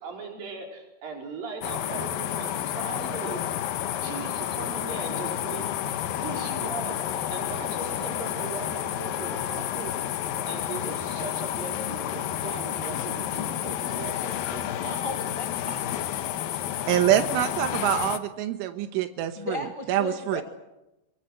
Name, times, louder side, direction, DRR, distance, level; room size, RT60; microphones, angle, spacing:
voice 1, 0.0-3.4 4.0-5.7 6.2-7.0 7.3-9.9 10.5-14.7, right 4 dB, 50° right, 1 dB, 6.2 m, -38 dB
sound 1, 1.6-18.2, left 11 dB, 70° left, 2.2 m, -30 dB
voice 2, 14.7-15.8 19.3-20.4, left 2 dB, 15° left, 4 dB, 1.1 m, -35 dB
voice 3, 16.9-19.6 19.9-20.4, right 12 dB, 85° right, 8 dB, 3.6 m, -25 dB
24.0 x 23.5 x 8.0 m, 0.94 s
omnidirectional pair, 5.6 m